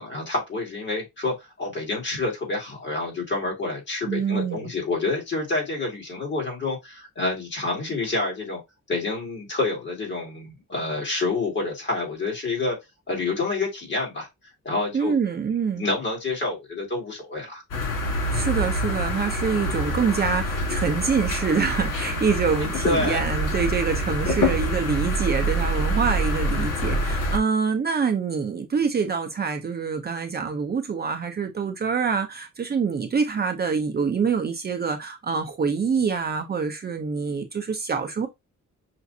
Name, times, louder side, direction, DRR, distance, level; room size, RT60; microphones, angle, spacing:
voice 1, 0.0-8.6 8.9-12.8 13.1-14.3 14.6-15.2 15.7-17.6 22.8-23.2, left 3 dB, 35° left, 2.1 m, -28 dB
voice 2, 4.1-4.7 14.9-15.8 18.3-38.3, right 5 dB, 30° right, 0.6 m, -25 dB
sound 1, 17.7-27.4, equal, 85° left, 1.8 m, -26 dB
5.9 x 2.5 x 2.6 m
wide cardioid pair, 165°, 31 cm